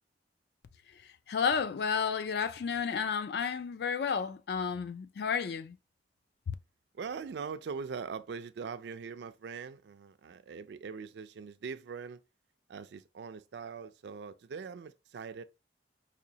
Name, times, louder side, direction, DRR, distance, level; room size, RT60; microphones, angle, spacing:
voice 1, 1.3-5.8 6.5-6.6, left 6 dB, 55° left, 0.3 m, -31 dB
voice 2, 6.9-12.2 12.7-15.4, right 5 dB, 65° right, 0.3 m, -42 dB
4.9 x 2.2 x 2.7 m
head